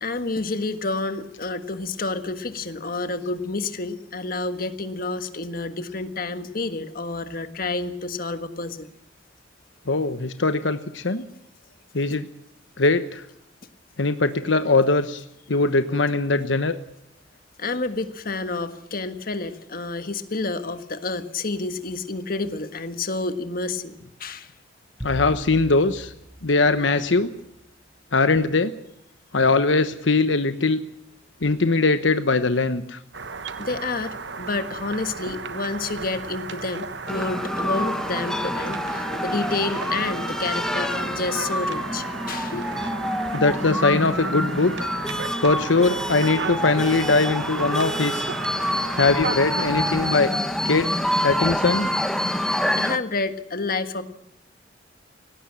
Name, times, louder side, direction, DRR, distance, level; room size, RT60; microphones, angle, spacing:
voice 1, 0.0-8.9 17.6-24.5 33.6-42.6 52.7-54.0, left 3 dB, 50° left, 9 dB, 1.6 m, -29 dB
voice 2, 9.9-11.2 11.9-12.2 12.8-13.2 14.0-15.2 15.5-16.8 25.0-26.1 26.4-27.3 28.1-28.7 29.3-30.8 31.4-33.0 42.5-42.7 43.3-44.9 45.4-48.3 49.0-50.3 50.6-51.0 51.2-51.9, left 3 dB, 80° left, 10 dB, 1.1 m, -21 dB
sound 1, 25.0-27.5, equal, 15° right, 4.6 m, -39 dB
sound 2, 33.1-50.1, right 4 dB, 65° right, 1.2 m, -35 dB
sound 3, 37.1-53.0, equal, 5° left, 1.2 m, -27 dB
18.0 x 17.5 x 8.8 m, 0.75 s
head